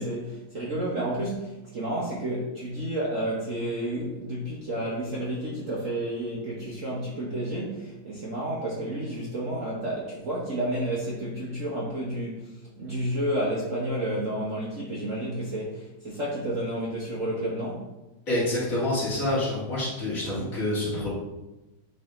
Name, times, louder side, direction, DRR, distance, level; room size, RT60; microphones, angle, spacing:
voice 1, 0.0-17.9, right 1 dB, 45° right, -5 dB, 1.4 m, -31 dB
voice 2, 18.3-21.1, left 1 dB, 40° left, -8 dB, 2.9 m, -27 dB
8.5 x 4.1 x 3.8 m, 1.0 s
omnidirectional pair, 2.3 m